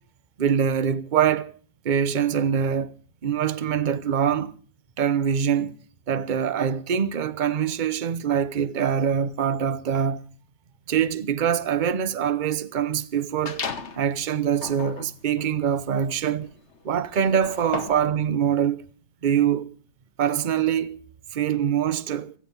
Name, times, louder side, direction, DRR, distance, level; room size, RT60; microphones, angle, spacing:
voice 1, 0.4-1.5 1.8-2.9 3.2-4.5 5.0-5.7 6.1-10.3 10.9-13.6 13.9-16.5 16.8-18.8 19.2-19.7 20.2-21.0 21.3-22.3, right 8 dB, 40° right, 0.7 m, -24 dB
sound 1, 13.4-14.0 14.5-18.1, left 5 dB, 40° left, 1.4 m, -36 dB
16.5 x 16.0 x 5.4 m
omnidirectional pair, 2.0 m